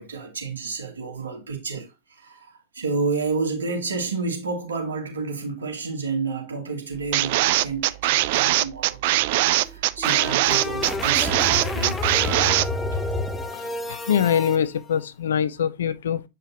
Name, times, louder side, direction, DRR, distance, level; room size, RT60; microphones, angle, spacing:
voice 1, 0.0-12.6 12.9-13.0, right 4 dB, 70° right, 2.5 m, -30 dB
sound 1, 7.1-12.7, right 16 dB, 50° right, 0.4 m, -21 dB
sound 2, 9.6-14.6, left 2 dB, 10° left, 0.9 m, -29 dB
voice 2, 13.5-16.2, left 8 dB, 65° left, 0.6 m, -24 dB
8.7 x 5.1 x 2.8 m
figure-of-eight pair, 90°, 0 cm